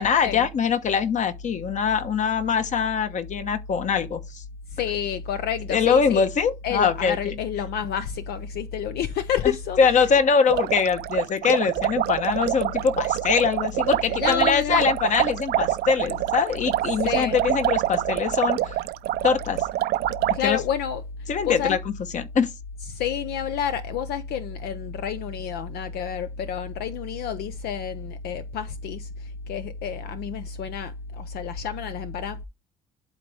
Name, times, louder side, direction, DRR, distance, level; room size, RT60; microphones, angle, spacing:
voice 1, 0.0-4.4 5.7-7.3 9.4-18.8 19.2-19.6 20.4-20.6 21.3-21.8 22.1-22.5, left 6 dB, 45° left, 1.1 m, -23 dB
voice 2, 4.7-6.3 6.6-10.2 14.0-14.9 17.0-17.4 20.3-21.0 21.4-21.8 22.9-32.4, left 8 dB, 70° left, 0.6 m, -29 dB
sound 1, 10.4-20.4, right 14 dB, 70° right, 0.5 m, -26 dB
11.5 x 4.0 x 3.5 m
cardioid pair, 110°, 17 cm